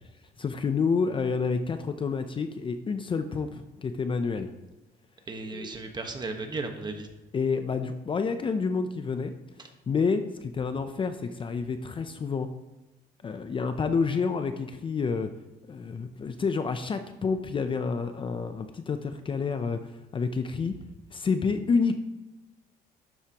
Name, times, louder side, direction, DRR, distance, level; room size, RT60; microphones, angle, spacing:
voice 1, 0.4-4.5 5.5-5.7 7.3-9.3 9.9-12.5 13.2-15.3 15.7-20.7 21.1-22.0, left 5 dB, 30° left, 9 dB, 0.6 m, -29 dB
voice 2, 5.3-7.1, right 3 dB, 25° right, 5 dB, 1.3 m, -35 dB
12.0 x 8.0 x 3.0 m, 1.0 s
cardioid pair, 110°, 17 cm